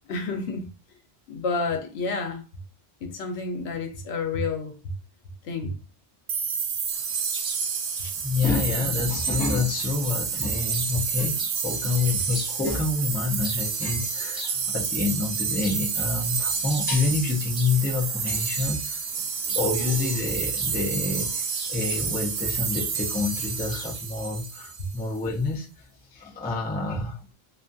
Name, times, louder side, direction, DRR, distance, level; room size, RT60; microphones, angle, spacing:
voice 1, 0.1-0.7 1.3-2.4 3.0-4.8 5.4-5.8 8.8-8.9 19.4-19.6 24.8-24.9, left 3 dB, 80° left, 0.9 m, -30 dB
sound 1, 6.3-25.0, right 6 dB, 80° right, 0.8 m, -29 dB
Chirp tweet, 6.9-24.0, equal, 5° right, 0.8 m, -46 dB
voice 2, 8.0-19.0 19.5-25.7 26.1-27.2, left 4 dB, 15° left, 0.3 m, -28 dB
2.5 x 2.3 x 2.5 m
omnidirectional pair, 1.1 m